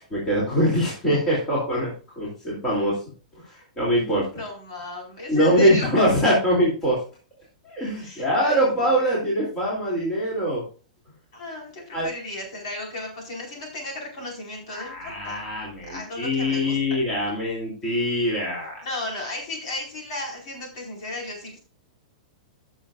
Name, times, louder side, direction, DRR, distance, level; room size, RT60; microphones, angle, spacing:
voice 1, 0.1-3.0 3.3-4.4 5.3-7.0 7.6-10.6 11.9-12.1 14.7-18.8, equal, 10° left, -6 dB, 2.9 m, -23 dB
voice 2, 4.3-5.9 8.0-8.6 8.9-9.0 11.3-15.4 15.9-16.8 18.8-21.6, left 2 dB, 45° left, -1 dB, 4.8 m, -35 dB
16.0 x 6.5 x 2.5 m, 0.36 s
supercardioid pair, 175°, 4 cm